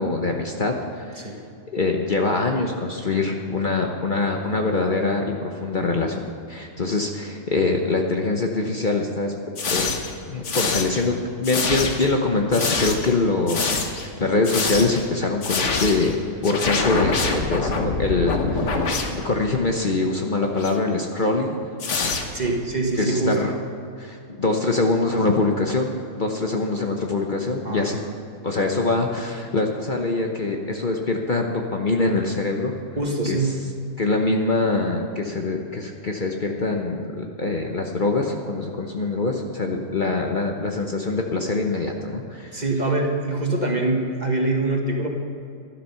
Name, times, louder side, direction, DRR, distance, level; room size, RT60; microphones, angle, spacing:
voice 1, 0.0-1.3 1.7-9.3 9.7-9.9 10.3-16.2 16.4-18.9 19.2-21.6 23.0-23.5 24.0-28.0 28.4-32.7 33.3-33.4 34.0-42.6, left 3 dB, 40° left, 1 dB, 1.0 m, -24 dB
sound 1, 9.6-10.1 10.4-11.1 11.4-12.1 12.5-13.1 13.5-14.1 14.4-15.1 15.4-16.1 16.4-19.6 20.5-20.8 21.8-22.6, left 4 dB, 60° left, 1.5 m, -25 dB
voice 2, 22.3-23.5 27.6-28.0 33.0-33.6 42.5-45.1, right 2 dB, 35° right, 1 dB, 1.5 m, -24 dB
12.5 x 11.5 x 5.7 m, 2.4 s
omnidirectional pair, 1.4 m